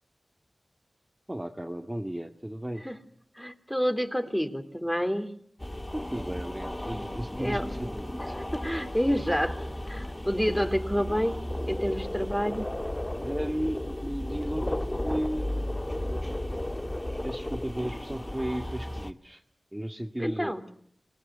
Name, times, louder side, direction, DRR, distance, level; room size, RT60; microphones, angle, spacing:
voice 1, 1.3-2.8 5.9-8.3 13.2-15.7 17.2-19.4 19.7-20.5, equal, 15° right, 3 dB, 2.1 m, -34 dB
voice 2, 3.3-5.3 6.9-7.1 7.4-7.6 8.5-9.6 9.8-11.4 11.7-12.7 20.2-20.6, equal, 5° left, 8 dB, 3.1 m, -28 dB
sound 1, 5.6-19.1, left 1 dB, 25° left, 1.7 m, -34 dB
26.5 x 19.5 x 9.4 m, 0.67 s
cardioid pair, 40°, 0 cm